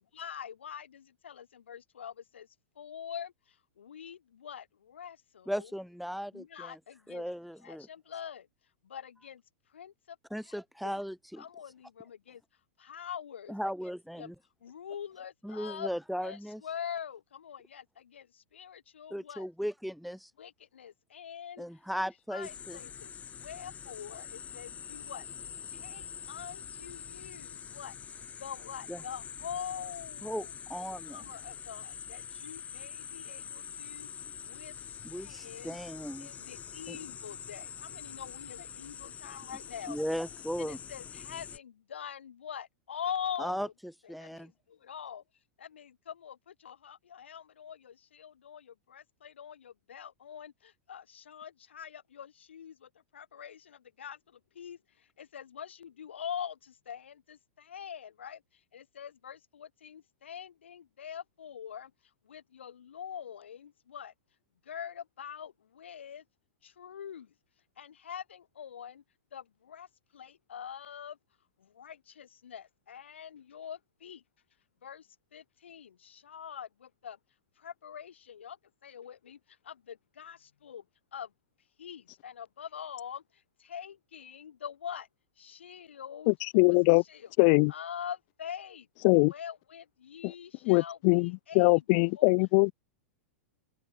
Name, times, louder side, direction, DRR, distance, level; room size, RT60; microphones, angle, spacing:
voice 1, 0.0-2.4 2.8-3.3 3.8-4.6 4.9-5.2 5.6-5.7 6.3-7.2 7.6-8.4 8.9-9.4 9.7-9.9 10.8-11.0 11.4-12.4 12.9-13.5 14.2-14.3 14.6-15.9 16.2-17.8 18.1-18.2 18.5-19.5 20.4-21.6 22.3-23.1 23.4-25.2 25.8-26.0 26.3-27.5 27.8-27.9 28.4-30.5 31.1-33.4 33.8-34.1 34.5-34.7 35.2-35.8 36.2-40.0 40.6-43.7 44.0-44.1 44.9-45.2 45.7-46.3 46.6-47.9 48.2-48.6 48.9-50.5 50.9-52.7 53.1-53.6 54.0-54.2 54.6-54.8 55.2-56.5 56.9-57.4 57.7-58.4 58.7-61.9 62.3-64.1 64.7-65.5 65.8-66.2 66.8-67.3 67.8-69.0 69.3-69.4 69.7-69.9 70.1-71.1 71.8-74.2 74.8-75.0 75.3-75.9 76.3-76.7 77.0-77.2 77.6-78.6 78.8-79.4 79.7-79.8 80.2-80.4 80.6-80.8 81.1-81.3 81.8-83.2 83.7-85.1 85.4-86.3 87.1-87.3 87.7-88.8 89.3-92.3, left 8 dB, 65° left, 2.7 m, -43 dB
voice 2, 5.5-6.8 7.1-7.9 10.3-11.4 13.5-14.3 15.4-16.6 19.1-20.3 21.6-22.8 28.9-29.0 30.2-31.2 35.0-36.3 36.9-37.0 39.9-40.8 43.4-43.7 44.1-44.5, equal, ahead, 4.0 m, -37 dB
sound 1, 22.4-41.6, left 8 dB, 20° left, 1.7 m, -45 dB
voice 3, 86.3-87.0 87.4-87.7 89.0-89.3 90.2-90.3 90.7-92.7, left 37 dB, 40° left, 0.5 m, -22 dB
figure-of-eight pair, 95°, 7 cm